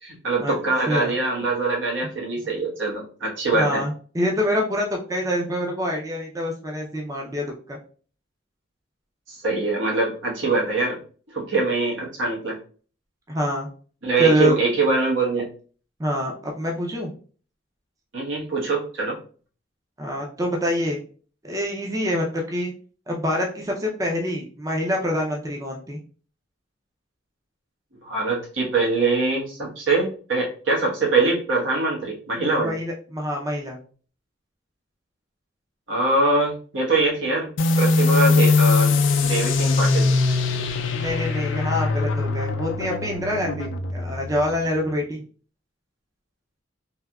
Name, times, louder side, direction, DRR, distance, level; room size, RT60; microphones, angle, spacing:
voice 1, 0.0-3.8 9.3-11.0 11.3-12.6 14.0-15.5 18.1-19.2 28.0-32.8 35.9-37.5 37.8-40.1, right 3 dB, 85° right, -3 dB, 1.2 m, -23 dB
voice 2, 3.5-7.8 13.3-13.7 14.2-14.5 16.0-17.1 20.0-21.0 21.4-22.7 23.1-26.0 32.6-33.8 40.9-45.2, equal, 20° right, 0 dB, 0.5 m, -26 dB
sound 1, 37.6-44.8, left 3 dB, 90° left, 0.4 m, -21 dB
3.4 x 2.7 x 2.3 m, 0.41 s
head